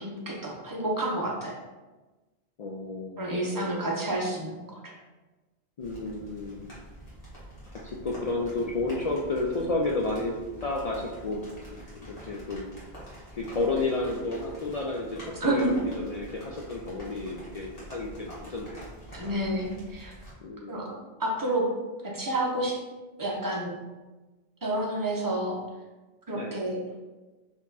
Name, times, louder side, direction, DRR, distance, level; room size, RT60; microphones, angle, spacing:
voice 1, 0.0-1.6 3.2-4.9 15.4-15.7 19.1-20.1 20.7-21.7 22.0-22.8 23.2-23.7 24.6-25.6 26.3-26.8, right 1 dB, 20° right, -2 dB, 0.7 m, -29 dB
voice 2, 2.6-3.9 5.8-6.7 7.8-12.6 13.3-18.9 19.2-19.3 20.4-20.9 26.3-26.6, left 2 dB, 60° left, -1 dB, 0.4 m, -32 dB
sound 1, 5.8-20.3, equal, 35° left, 1.6 m, -46 dB
4.2 x 2.9 x 4.0 m, 1.2 s
omnidirectional pair, 1.1 m